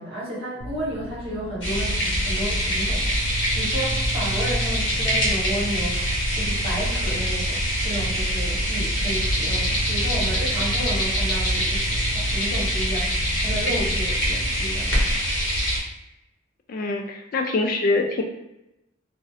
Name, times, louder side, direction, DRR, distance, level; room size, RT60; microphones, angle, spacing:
voice 1, 0.0-3.1 3.5-15.0, equal, 30° right, -8 dB, 1.0 m, -32 dB
sound 1, 0.6-14.6, right 2 dB, 75° right, 0.4 m, -36 dB
sound 2, 1.6-15.8, equal, 60° left, 0.8 m, -24 dB
voice 2, 16.7-18.2, left 3 dB, 45° left, 3 dB, 0.3 m, -24 dB
2.4 x 2.0 x 2.6 m, 0.90 s
head